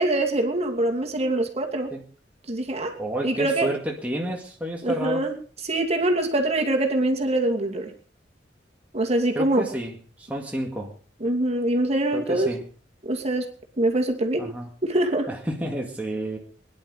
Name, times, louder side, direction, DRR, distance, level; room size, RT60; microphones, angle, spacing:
voice 1, 0.0-1.9 2.5-3.0 3.2-3.7 4.8-5.3 5.6-7.9 8.9-9.7 11.2-12.5 13.0-13.5 13.8-14.5 14.8-15.3, right 1 dB, 35° right, 3 dB, 2.7 m, -24 dB
voice 2, 3.0-5.2 9.3-10.9 12.1-12.6 14.4-14.7 15.3-16.4, right 1 dB, 10° right, 0 dB, 2.0 m, -30 dB
22.0 x 11.0 x 4.9 m, 0.40 s
head